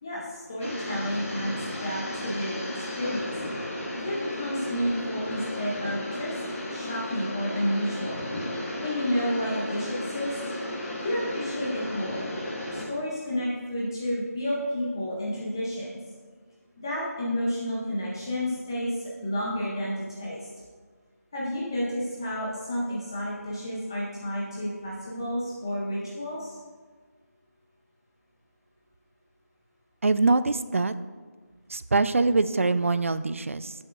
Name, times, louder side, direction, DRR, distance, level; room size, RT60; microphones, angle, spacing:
voice 1, 0.0-1.5 1.8-3.3 4.0-6.4 6.7-8.2 8.8-10.4 11.0-12.3 12.7-16.0 16.8-20.4 21.3-26.6, equal, 15° left, -6 dB, 0.6 m, -31 dB
sound 1, 0.6-12.9, left 1 dB, 50° left, 2.1 m, -34 dB
voice 2, 30.0-30.9 31.7-33.7, right 3 dB, 50° right, 14 dB, 0.3 m, -24 dB
11.0 x 6.9 x 2.5 m, 1.5 s
figure-of-eight pair, 175°, 9 cm